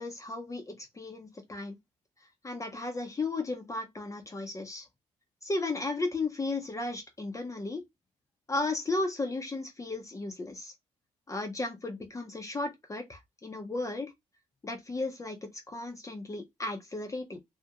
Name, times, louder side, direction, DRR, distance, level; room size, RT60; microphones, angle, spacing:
voice 1, 0.0-1.8 2.4-4.9 5.4-7.8 8.5-10.7 11.3-14.1 14.6-15.4 15.7-17.4, left 2 dB, 25° left, 0.6 m, -35 dB
2.4 x 2.1 x 2.7 m
cardioid pair, 75°, 13 cm